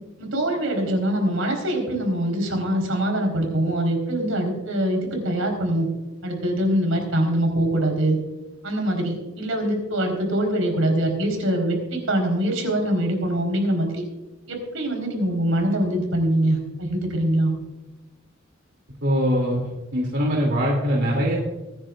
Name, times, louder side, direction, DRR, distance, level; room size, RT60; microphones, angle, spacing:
voice 1, 0.2-5.9 6.2-8.2 8.6-14.0 14.5-17.5, right 1 dB, 80° right, 2 dB, 4.2 m, -23 dB
voice 2, 19.0-21.4, equal, 65° right, -3 dB, 2.8 m, -22 dB
24.0 x 10.0 x 2.5 m, 1.1 s
head